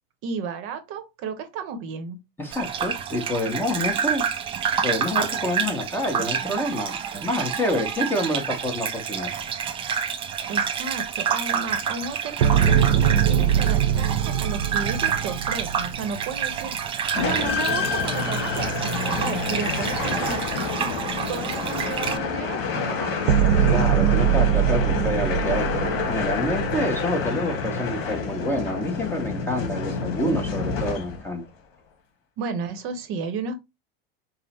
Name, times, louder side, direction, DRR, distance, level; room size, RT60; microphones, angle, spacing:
voice 1, 0.2-2.2 10.5-20.5 21.3-23.5 32.4-33.6, right 5 dB, 45° right, 0.8 m, -33 dB
voice 2, 2.4-4.3 4.8-9.3 20.0-20.3 23.6-31.4, left 1 dB, 5° left, 0.8 m, -28 dB
Gurgling / Bathtub (filling or washing), 2.5-22.2, right 7 dB, 20° right, 0.4 m, -28 dB
sound 1, 12.4-16.7 23.3-27.0, right 9 dB, 85° right, 0.8 m, -22 dB
sound 2, 17.1-31.4, left 5 dB, 50° left, 1.6 m, -28 dB
5.4 x 2.0 x 4.1 m
supercardioid pair, 140°, 30 cm